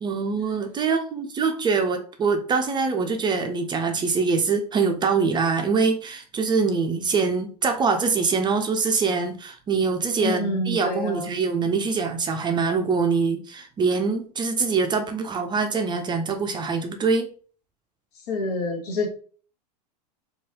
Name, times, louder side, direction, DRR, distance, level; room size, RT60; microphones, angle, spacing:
voice 1, 0.0-17.3, right 5 dB, 20° right, 5 dB, 0.4 m, -24 dB
voice 2, 10.2-11.3 18.3-19.1, left 2 dB, 70° left, 2 dB, 0.9 m, -27 dB
3.0 x 2.4 x 2.8 m, 0.42 s
hypercardioid pair, 90°, 21 cm